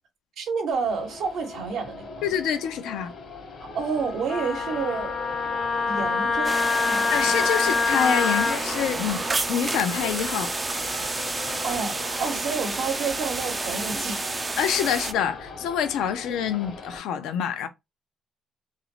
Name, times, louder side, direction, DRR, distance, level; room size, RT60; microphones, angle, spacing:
voice 1, 0.4-2.2 3.7-5.1 5.9-7.4 11.6-14.2, right 5 dB, 75° right, 0.8 m, -29 dB
sound 1, 0.7-17.0, left 3 dB, 60° left, 1.0 m, -39 dB
voice 2, 2.2-3.1 7.1-9.2 9.5-10.5 14.6-17.7, left 8 dB, 90° left, 0.4 m, -26 dB
Wind instrument woodwind instrument, 4.3-8.6, left 4 dB, 40° left, 0.6 m, -25 dB
sound 2, 6.4-15.1, right 3 dB, 25° right, 0.3 m, -30 dB
2.5 x 2.1 x 3.0 m
cardioid pair, 90°, 0 cm